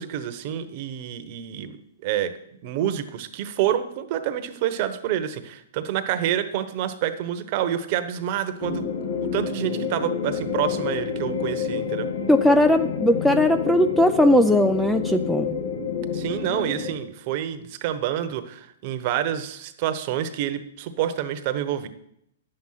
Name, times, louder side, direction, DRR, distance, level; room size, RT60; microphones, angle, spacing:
voice 1, 0.0-1.7 2.0-2.3 2.6-8.9 9.2-12.1 16.1-21.9, right 11 dB, 40° right, 10 dB, 1.0 m, -28 dB
sound 1, 8.6-16.9, left 6 dB, 80° left, 1.9 m, -28 dB
voice 2, 12.3-15.5, left 1 dB, ahead, 9 dB, 0.4 m, -19 dB
10.5 x 7.8 x 5.7 m, 0.74 s
hypercardioid pair, 150°, 0 cm